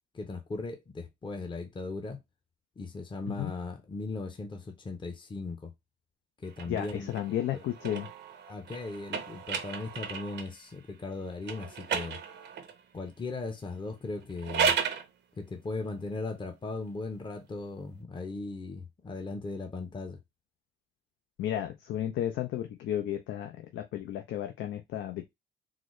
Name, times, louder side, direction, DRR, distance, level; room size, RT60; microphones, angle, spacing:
voice 1, 0.1-2.2 2.8-5.7 6.4-7.6 8.5-12.2 12.9-14.7 15.4-20.2, left 3 dB, 25° left, 0.7 m, -38 dB
sound 1, 6.5-10.6 11.4-12.8 14.2-15.1, right 6 dB, 60° right, 0.7 m, -34 dB
voice 2, 6.6-8.1 21.4-25.3, left 11 dB, 75° left, 0.5 m, -33 dB
3.9 x 2.0 x 3.1 m
cardioid pair, 90°, 20 cm